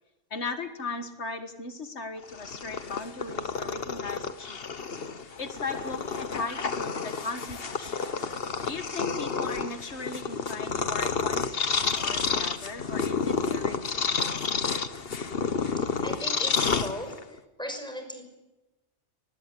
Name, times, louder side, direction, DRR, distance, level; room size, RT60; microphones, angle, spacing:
voice 1, 0.3-5.0 5.4-8.3 8.6-14.5, left 3 dB, 85° left, 7 dB, 2.0 m, -38 dB
Purr, 2.2-17.4, left 5 dB, 60° left, 1.4 m, -30 dB
voice 2, 16.0-18.2, equal, 5° left, 4 dB, 6.0 m, -38 dB
23.5 x 20.0 x 8.4 m, 1.0 s
omnidirectional pair, 1.1 m